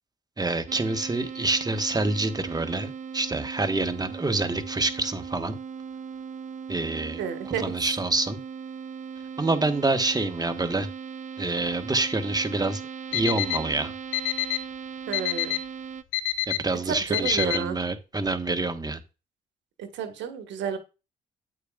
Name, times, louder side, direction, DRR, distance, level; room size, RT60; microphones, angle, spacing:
voice 1, 0.4-5.6 6.7-7.2 7.5-8.4 9.4-10.9 11.4-12.8 13.1-13.9 16.5-19.0, right 2 dB, 20° right, 9 dB, 1.3 m, -27 dB
sound 1, 0.7-16.0, right 6 dB, 40° right, 0.8 m, -38 dB
voice 2, 7.2-7.6 15.1-15.6 16.8-17.8 19.8-20.8, right 7 dB, 75° right, 8 dB, 1.5 m, -31 dB
Alarm, 13.1-13.6 14.1-14.6 15.1-15.6 16.1-16.6 17.1-17.6, left 15 dB, 85° left, 0.7 m, -26 dB
8.6 x 8.3 x 2.4 m, 0.29 s
hypercardioid pair, 50°, 19 cm